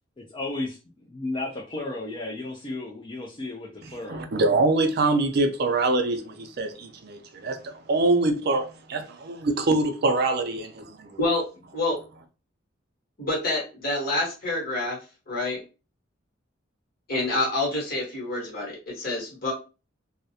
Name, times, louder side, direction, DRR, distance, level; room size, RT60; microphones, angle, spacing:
voice 1, 0.2-4.3, left 2 dB, 25° left, 0.4 m, -34 dB
voice 2, 4.1-11.2, right 2 dB, 55° right, 0.4 m, -24 dB
voice 3, 13.2-15.0 15.3-15.6 17.1-19.5, left 2 dB, 50° left, 1.2 m, -27 dB
2.3 x 2.0 x 2.7 m
head